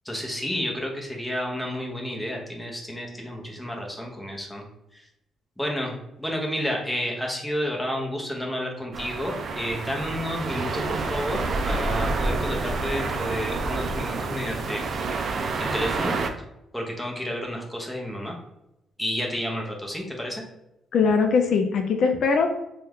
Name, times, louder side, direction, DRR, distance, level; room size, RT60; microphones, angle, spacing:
voice 1, 0.0-4.6 4.9-5.0 5.6-15.0 15.6-16.2 16.7-18.4 19.0-20.4, equal, 5° left, 0 dB, 0.8 m, -31 dB
sound 1, 8.9-16.3, right 3 dB, 55° right, 0.4 m, -28 dB
voice 2, 20.9-22.5, left 5 dB, 65° left, 4 dB, 0.3 m, -21 dB
2.8 x 2.3 x 3.4 m, 0.85 s
cardioid pair, 90°, 0 cm